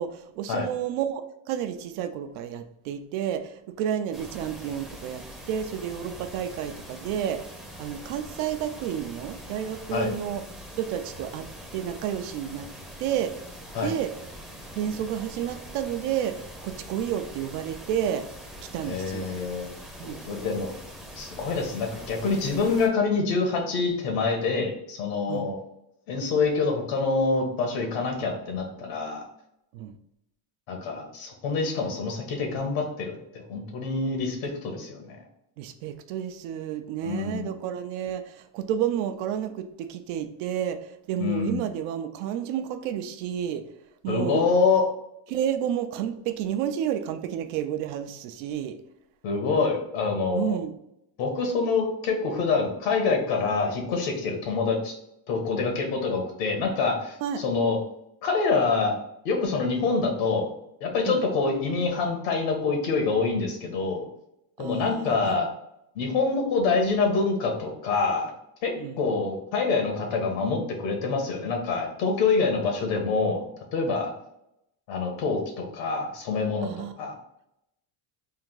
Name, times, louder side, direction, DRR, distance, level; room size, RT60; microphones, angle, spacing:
voice 1, 0.0-7.5 7.8-10.4 10.8-12.7 13.0-13.4 13.8-14.1 14.7-18.3 18.7-19.4 20.0-20.2 25.3-25.5 29.7-30.0 35.6-43.6 44.0-44.5 45.3-48.8 50.3-50.7 57.2-57.4 61.1-61.2 64.6-65.5 68.8-69.0 76.6-76.9, right 9 dB, 80° right, 8 dB, 0.7 m, -31 dB
sound 1, 4.1-22.9, equal, ahead, 0.5 m, -43 dB
voice 2, 18.8-19.7 20.0-20.7 21.1-25.6 26.1-29.2 30.7-35.2 37.0-37.5 41.2-41.6 44.1-44.9 49.2-50.6 51.2-54.9 55.3-57.8 58.2-59.0 59.2-60.5 60.8-64.0 64.6-65.5 65.9-68.3 68.6-73.4 73.7-74.1 74.9-76.7 77.0-77.1, left 4 dB, 75° left, 2 dB, 1.4 m, -26 dB
3.7 x 2.6 x 3.8 m, 0.81 s
cardioid pair, 155°, 49 cm